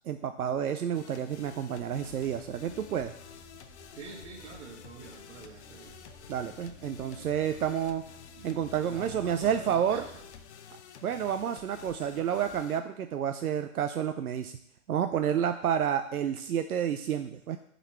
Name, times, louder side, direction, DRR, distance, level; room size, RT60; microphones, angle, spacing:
voice 1, 0.1-3.1 6.3-8.0 8.4-10.1 11.0-14.5 14.9-17.6, right 9 dB, 85° right, 8 dB, 0.6 m, -30 dB
sound 1, 0.9-12.8, left 8 dB, 50° left, 0.7 m, -50 dB
sound 2, 1.8-10.4, equal, 5° right, 0.4 m, -56 dB
voice 2, 3.9-6.0 8.3-8.5 8.8-10.2, right 5 dB, 50° right, 2 dB, 1.6 m, -46 dB
8.1 x 4.0 x 4.3 m, 0.72 s
hypercardioid pair, 140°, 43 cm